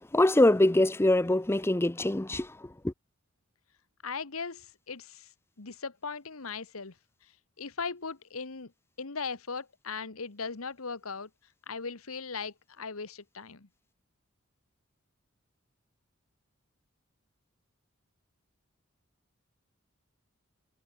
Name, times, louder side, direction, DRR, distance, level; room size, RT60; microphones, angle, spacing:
voice 1, 0.1-2.9, left 1 dB, 10° left, 0.5 m, -24 dB
voice 2, 4.0-5.3 5.6-6.9 7.6-8.7 9.0-11.3 11.7-13.7, left 5 dB, 85° left, 1.5 m, -38 dB
head